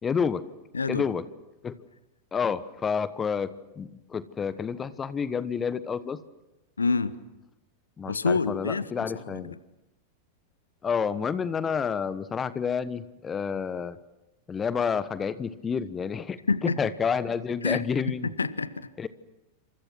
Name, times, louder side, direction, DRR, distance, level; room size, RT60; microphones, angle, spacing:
voice 1, 0.0-0.4 0.9-1.2 1.6-1.8 2.3-3.5 3.8-6.2 8.0-9.6 10.8-14.0 14.5-16.4 16.8-18.3 19.0-19.1, left 6 dB, 20° left, 16 dB, 1.2 m, -29 dB
voice 2, 0.7-1.1 6.8-7.1 8.1-9.6 16.5-16.8 17.6-17.8 18.2-18.9, left 4 dB, 75° left, 16 dB, 1.1 m, -27 dB
29.0 x 26.5 x 6.1 m, 0.98 s
figure-of-eight pair, 90°, 0 cm